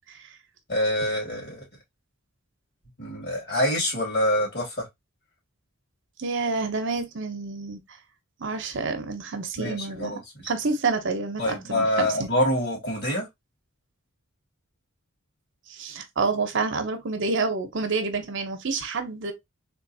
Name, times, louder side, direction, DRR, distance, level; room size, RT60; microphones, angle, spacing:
voice 1, 0.7-1.6 3.0-4.9 9.6-10.5 11.4-13.3, left 1 dB, 50° left, 2.3 m, -26 dB
voice 2, 6.2-7.8 8.4-12.3 15.7-19.3, right 4 dB, 60° right, 0.8 m, -28 dB
3.7 x 3.1 x 2.7 m
head